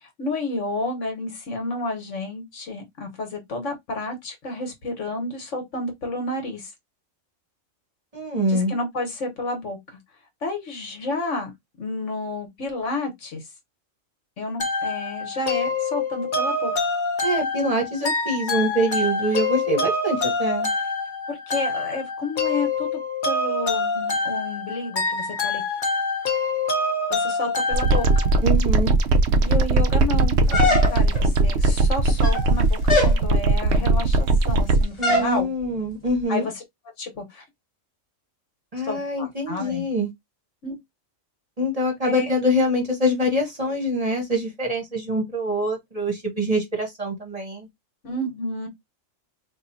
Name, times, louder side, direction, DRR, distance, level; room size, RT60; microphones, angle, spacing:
voice 1, 0.0-6.7 8.5-9.8 10.4-11.5 11.8-13.5 14.4-16.7 21.3-23.0 23.2-25.6 27.1-28.1 29.4-35.5 36.3-36.5 37.0-37.4 38.8-39.9 40.6-40.8 42.0-42.3 48.0-48.7, left 2 dB, 65° left, 1.5 m, -30 dB
voice 2, 8.1-8.7 17.2-20.7 28.4-28.9 35.0-36.5 38.7-40.1 41.6-47.7, equal, 30° right, 1.0 m, -24 dB
sound 1, 14.6-28.4, left 3 dB, 40° left, 0.9 m, -26 dB
sound 2, 27.7-34.8, right 2 dB, 65° right, 0.8 m, -19 dB
sound 3, 30.5-31.3 32.1-32.5 32.9-33.2 35.0-35.3, left 2 dB, 25° left, 1.2 m, -22 dB
4.4 x 2.5 x 2.6 m
omnidirectional pair, 1.4 m